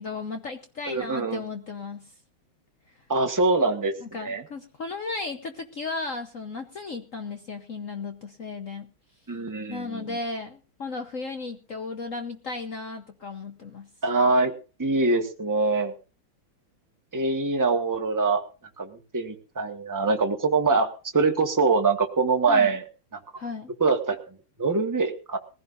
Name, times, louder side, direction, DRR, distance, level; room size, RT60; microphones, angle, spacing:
voice 1, 0.0-2.1 4.0-8.9 9.7-13.9 22.4-22.8 23.4-23.7, left 3 dB, 50° left, 6 dB, 1.1 m, -35 dB
voice 2, 0.9-1.4 3.1-4.4 9.3-10.2 14.0-14.5 14.8-15.9 17.1-18.4 18.8-22.8 23.8-25.4, right 3 dB, 10° right, 4 dB, 1.2 m, -24 dB
21.0 x 15.5 x 2.6 m, 0.33 s
omnidirectional pair, 2.2 m